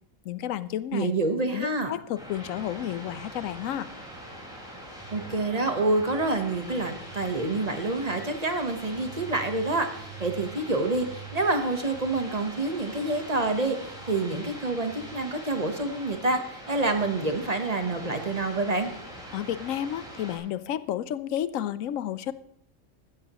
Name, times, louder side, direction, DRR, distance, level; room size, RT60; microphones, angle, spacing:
voice 1, 0.2-1.1 1.5-3.9 19.3-22.3, left 11 dB, 85° left, 15 dB, 1.0 m, -31 dB
voice 2, 0.9-1.9 5.1-18.9, right 2 dB, 30° right, 6 dB, 1.1 m, -27 dB
sound 1, 2.1-20.4, right 1 dB, 5° right, 4.9 m, -42 dB
15.5 x 13.0 x 3.0 m, 0.69 s
omnidirectional pair, 1.3 m